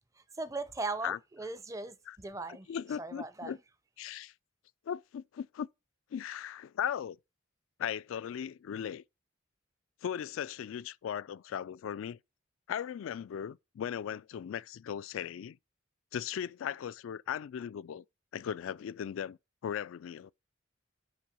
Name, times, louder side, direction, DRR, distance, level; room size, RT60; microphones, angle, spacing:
voice 1, 0.2-2.7 3.0-3.6, right 3 dB, 15° right, 0.5 m, -39 dB
voice 2, 2.7-3.6 4.0-4.3 4.9-5.7 6.1-7.2 7.8-9.0 10.0-12.2 12.7-15.6 16.1-18.0 18.3-19.4 19.6-20.3, left 9 dB, 75° left, 0.3 m, -37 dB
5.6 x 5.4 x 5.1 m
head